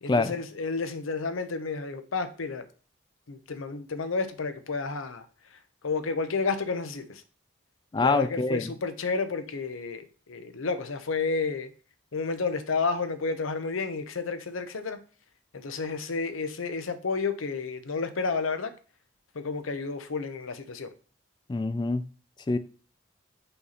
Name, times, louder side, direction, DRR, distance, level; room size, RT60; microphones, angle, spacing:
voice 1, 0.0-2.7 3.3-5.3 5.5-7.2 8.0-11.7 12.1-15.0 15.5-18.7 19.3-20.9, left 4 dB, 90° left, 0.7 m, -31 dB
voice 2, 7.9-8.7 21.5-22.0 22.5-22.6, left 3 dB, 20° left, 0.3 m, -25 dB
5.5 x 4.1 x 4.2 m
head